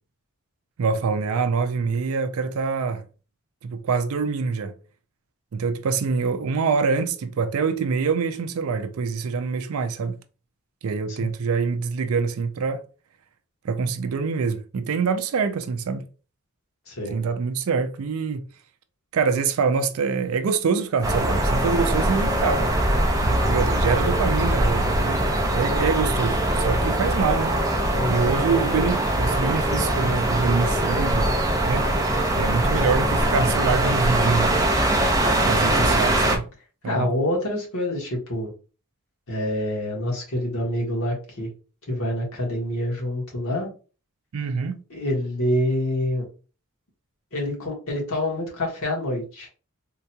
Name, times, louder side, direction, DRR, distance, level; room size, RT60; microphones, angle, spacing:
voice 1, 0.8-3.0 3.6-4.7 5.5-10.2 10.8-12.8 13.6-16.0 17.1-18.4 19.1-22.7 23.2-25.3 25.5-27.6 28.1-31.3 31.7-31.9 32.3-34.6 35.5-36.5 36.8-37.2 44.3-44.8, right 5 dB, 70° right, 0.4 m, -25 dB
voice 2, 16.9-17.2 27.9-28.3 35.5-35.8 36.8-38.5 39.3-41.5 41.9-43.7 44.9-46.2 47.3-49.5, left 1 dB, 70° left, 1.4 m, -27 dB
sound 1, 21.0-36.4, right 1 dB, 15° right, 0.5 m, -22 dB
3.7 x 2.8 x 2.2 m
head